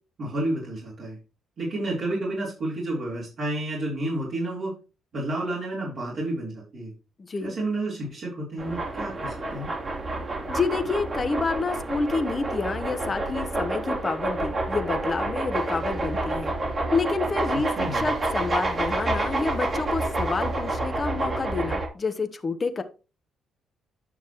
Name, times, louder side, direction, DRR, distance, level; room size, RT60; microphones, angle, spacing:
voice 1, 0.2-1.2 1.6-4.7 5.1-6.9 7.4-9.7 17.7-18.1, right 1 dB, 55° right, -5 dB, 4.0 m, -30 dB
voice 2, 7.2-7.5 10.5-16.5 16.9-22.8, left 4 dB, 30° left, 8 dB, 0.9 m, -28 dB
sound 1, 8.6-21.9, right 2 dB, 40° right, 2.8 m, -28 dB
9.6 x 6.3 x 3.1 m, 0.32 s
cardioid pair, 90°, 0 cm